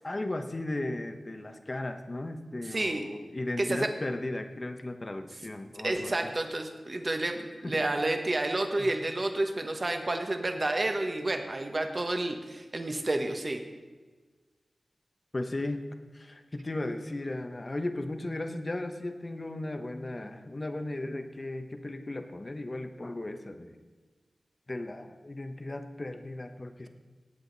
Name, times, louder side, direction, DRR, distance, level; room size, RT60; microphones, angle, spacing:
voice 1, 0.0-6.3 7.6-7.8 8.8-8.9 15.3-15.8 16.1-23.8 24.7-26.9, left 2 dB, 35° left, 7 dB, 1.0 m, -36 dB
voice 2, 2.7-3.0 3.6-3.9 5.8-13.6, right 2 dB, 40° right, 5 dB, 1.2 m, -30 dB
18.5 x 8.0 x 4.0 m, 1.4 s
wide cardioid pair, 90°, 0 cm